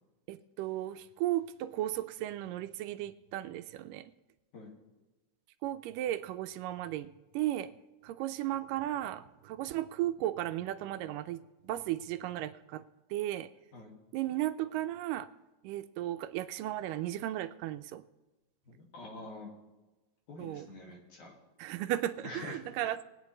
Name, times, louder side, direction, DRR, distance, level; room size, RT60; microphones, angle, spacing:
voice 1, 0.3-4.1 5.6-7.7 8.0-12.9 13.1-13.5 14.1-15.3 15.6-18.0 20.4-20.7 21.6-23.0, right 14 dB, 85° right, 11 dB, 2.1 m, -35 dB
voice 2, 18.7-19.5 20.3-21.3 22.2-22.6, left 2 dB, 65° left, -1 dB, 3.5 m, -46 dB
22.5 x 8.9 x 3.2 m, 1.1 s
omnidirectional pair, 3.9 m